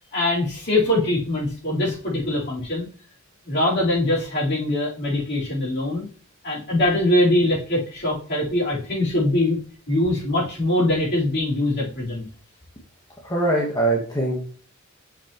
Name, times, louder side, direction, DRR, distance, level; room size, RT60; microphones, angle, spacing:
voice 1, 0.1-2.9 3.4-6.1 6.4-9.6 9.9-12.3, left 1 dB, 50° left, -6 dB, 3.7 m, -22 dB
voice 2, 13.2-14.4, right 1 dB, 15° left, -3 dB, 1.2 m, -22 dB
6.9 x 5.7 x 3.0 m, 0.41 s
head